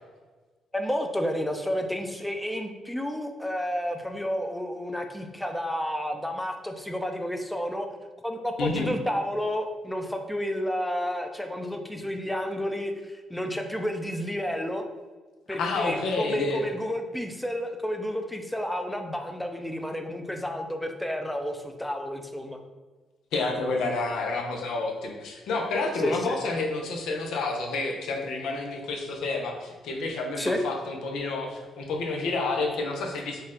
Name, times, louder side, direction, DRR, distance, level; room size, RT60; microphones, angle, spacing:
voice 1, 0.7-7.9 8.2-14.8 15.5-22.6 25.9-26.4 30.4-30.6, equal, 5° left, 5 dB, 0.5 m, -31 dB
voice 2, 8.6-8.9 15.5-16.6 23.3-33.4, left 3 dB, 80° left, 2 dB, 0.7 m, -29 dB
4.4 x 2.4 x 3.7 m, 1.3 s
cardioid pair, 90°, 0 cm